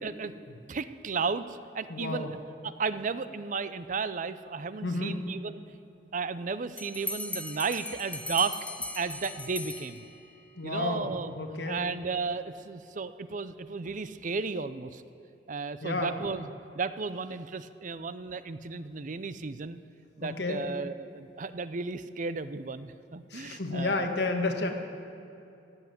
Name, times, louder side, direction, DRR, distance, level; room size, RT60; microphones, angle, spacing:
voice 1, 0.0-0.3 0.7-2.4 2.6-5.6 6.1-8.6 9.0-10.0 10.6-11.3 11.7-15.0 15.5-19.8 20.2-24.1, right 4 dB, 45° right, 14 dB, 0.5 m, -34 dB
voice 2, 1.9-2.3 4.8-5.2 10.6-11.8 15.8-16.2 20.2-20.6 23.3-24.7, left 2 dB, 65° left, 4 dB, 1.6 m, -31 dB
Bell, 6.8-10.4, left 2 dB, 10° left, 0.9 m, -38 dB
16.5 x 8.1 x 9.3 m, 2.8 s
head